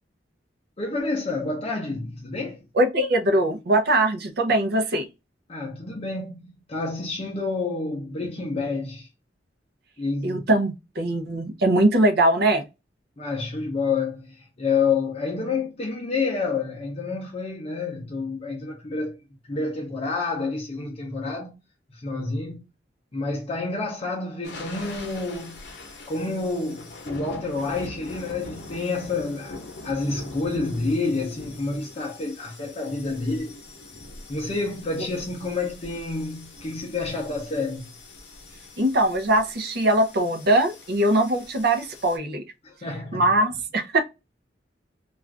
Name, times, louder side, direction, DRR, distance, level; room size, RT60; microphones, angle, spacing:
voice 1, 0.8-2.7 5.5-9.1 10.0-10.5 13.2-19.2 19.4-21.6 21.9-22.6 23.1-25.6 26.1-29.6 29.8-33.6 34.3-37.9 42.6-43.3, left 3 dB, 35° left, 0.6 m, -29 dB
voice 2, 2.7-5.1 10.2-12.6 38.8-42.4 43.1-44.0, right 1 dB, 60° right, 0.6 m, -21 dB
sound 1, 24.4-42.2, left 2 dB, 65° left, 0.8 m, -42 dB
2.4 x 2.4 x 3.2 m
head